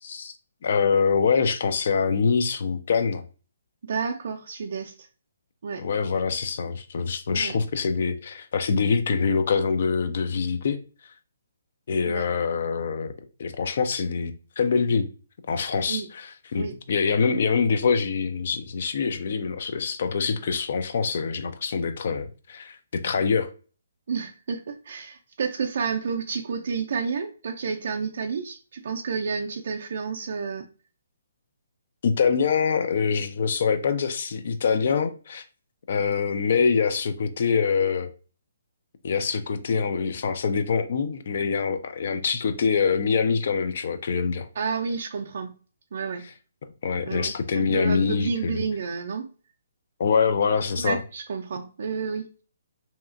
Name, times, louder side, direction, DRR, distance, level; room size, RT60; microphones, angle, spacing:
voice 1, 0.0-0.3 0.6-3.2 5.8-10.8 11.9-13.1 13.4-15.1 15.5-23.5 32.0-35.4 35.9-38.1 39.0-44.5 46.8-48.6 50.0-51.0, left 5 dB, 55° left, 0.4 m, -24 dB
voice 2, 3.8-4.9 5.6-5.8 7.3-7.6 12.1-12.3 15.6-16.1 16.6-16.7 24.1-30.7 44.6-45.5 45.9-46.2 47.1-49.3 50.8-52.2, right 5 dB, 60° right, 0.4 m, -30 dB
2.8 x 2.3 x 2.5 m
hypercardioid pair, 150°, 0 cm